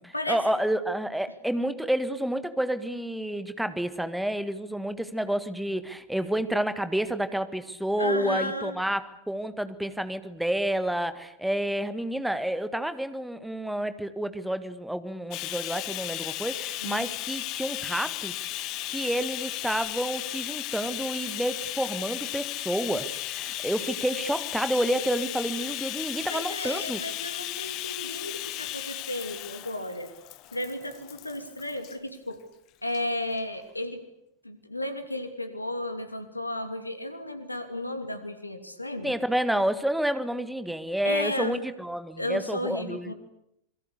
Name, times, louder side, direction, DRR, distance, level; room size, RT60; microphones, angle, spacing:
voice 1, 0.0-27.0 39.0-43.1, right 1 dB, ahead, 12 dB, 1.8 m, -29 dB
voice 2, 8.0-8.7 16.8-17.0 26.3-30.1 30.5-32.4 32.8-34.0 34.4-39.1 41.0-41.6 42.2-43.1, left 1 dB, 85° left, 8 dB, 2.9 m, -33 dB
Bathtub (filling or washing), 15.3-32.0 32.9-33.0 33.4-33.5, left 16 dB, 40° left, 1.3 m, -35 dB
27.5 x 22.5 x 8.3 m, 0.80 s
figure-of-eight pair, 90°, 0 cm